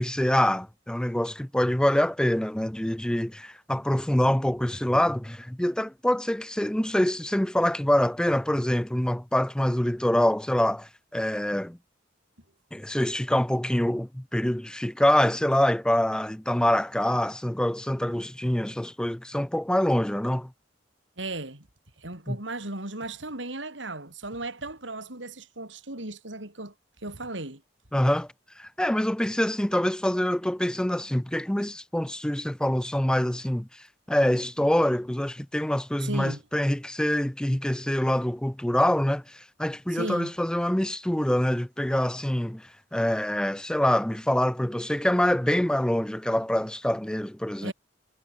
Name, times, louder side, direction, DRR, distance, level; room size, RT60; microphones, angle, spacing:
voice 1, 0.0-11.8 12.7-20.5 22.3-22.4 27.9-28.3 28.6-47.7, left 1 dB, 5° left, 0.5 m, -25 dB
voice 2, 21.2-21.7 22.0-26.7 27.0-27.6 36.0-36.4 39.9-40.3 47.6-47.7, right 2 dB, 80° right, 5.2 m, -36 dB
head